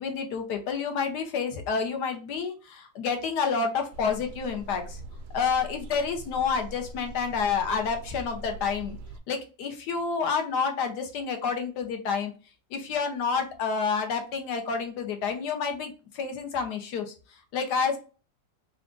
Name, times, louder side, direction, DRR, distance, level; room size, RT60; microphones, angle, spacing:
voice 1, 0.0-5.0 5.3-9.0 9.3-12.3 12.7-18.0, left 5 dB, 85° left, 5 dB, 1.4 m, -29 dB
sound 1, 3.9-9.2, right 1 dB, 70° right, 0.8 m, -42 dB
3.5 x 2.5 x 3.6 m, 0.35 s
omnidirectional pair, 1.7 m